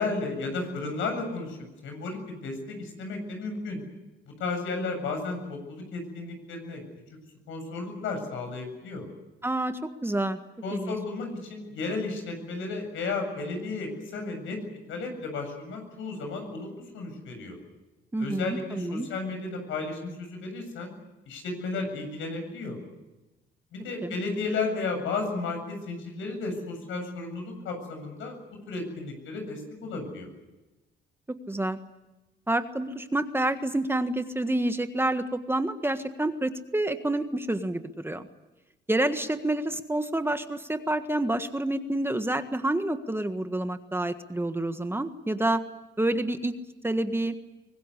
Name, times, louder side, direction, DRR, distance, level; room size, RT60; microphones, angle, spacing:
voice 1, 0.0-1.6 1.8-3.8 4.4-6.8 7.5-9.1 10.6-14.6 14.9-17.6 18.2-20.9 21.3-22.8 23.7-28.3 28.7-30.3, left 3 dB, 80° left, 5 dB, 7.7 m, -33 dB
voice 2, 9.4-10.4 10.7-10.9 18.1-19.1 24.0-24.1 31.5-31.8 32.5-38.3 38.9-45.6 46.0-46.5 46.8-47.3, right 1 dB, 10° right, 8 dB, 1.5 m, -28 dB
23.5 x 19.5 x 9.9 m, 1.0 s
cardioid pair, 90°, 20 cm